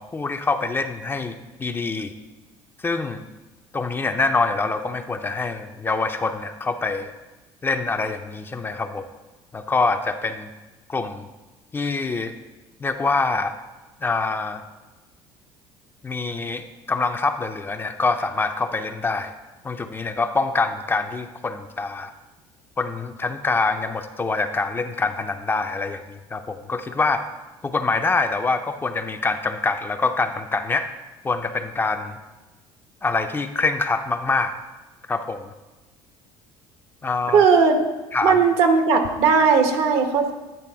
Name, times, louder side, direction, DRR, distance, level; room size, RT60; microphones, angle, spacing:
voice 1, 0.0-2.1 2.8-3.2 3.7-7.1 7.6-9.1 9.5-10.5 10.9-11.3 11.7-12.3 12.8-13.5 14.0-14.6 16.0-19.3 19.6-22.1 22.8-27.2 27.6-30.9 31.2-32.2 33.0-34.5 35.1-35.5 37.0-37.5 38.1-38.4, left 3 dB, 20° left, 7 dB, 0.5 m, -25 dB
voice 2, 37.3-37.8 38.2-40.3, right 5 dB, 70° right, 6 dB, 0.9 m, -17 dB
9.3 x 3.4 x 4.5 m, 1.1 s
supercardioid pair, 90°, 10 cm